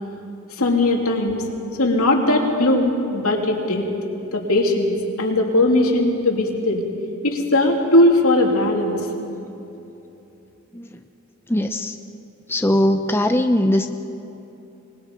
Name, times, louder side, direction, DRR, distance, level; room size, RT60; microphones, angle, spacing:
voice 1, 0.6-1.4 1.8-3.9 4.3-6.8 7.2-9.0, left 1 dB, 80° left, 1 dB, 2.7 m, -19 dB
voice 2, 11.5-12.0 12.5-13.9, left 1 dB, 10° left, 6 dB, 0.6 m, -20 dB
25.5 x 20.0 x 5.2 m, 2.9 s
head